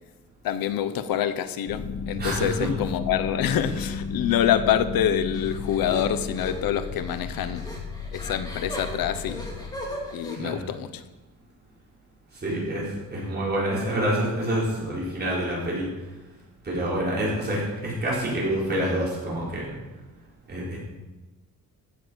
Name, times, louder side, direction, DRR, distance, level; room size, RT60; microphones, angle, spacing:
voice 1, 0.4-1.8 2.1-7.6 8.1-9.5 10.1-11.0, left 10 dB, 80° left, 12 dB, 1.0 m, -26 dB
sound 1, 1.7-10.4, left 5 dB, 65° left, 1.4 m, -34 dB
voice 2, 2.2-2.7 10.4-10.6 12.3-15.9 16.6-19.7 20.5-20.8, right 1 dB, 30° right, -6 dB, 4.2 m, -27 dB
sound 2, 5.3-10.4, equal, 10° left, 2.7 m, -38 dB
15.0 x 6.9 x 6.3 m, 1.1 s
cardioid pair, 140°, 34 cm